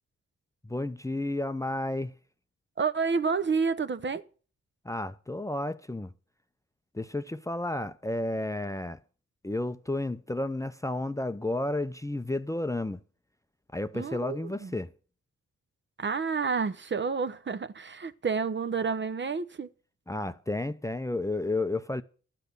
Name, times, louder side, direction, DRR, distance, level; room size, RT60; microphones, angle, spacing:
voice 1, 0.6-2.1 4.8-6.1 6.9-9.0 9.4-13.0 13.7-14.9 20.1-22.0, left 2 dB, 10° left, 0.6 m, -32 dB
voice 2, 2.8-4.2 13.9-14.7 16.0-19.7, right 5 dB, 35° right, 0.8 m, -29 dB
12.0 x 8.0 x 6.8 m
supercardioid pair, 50°, 30 cm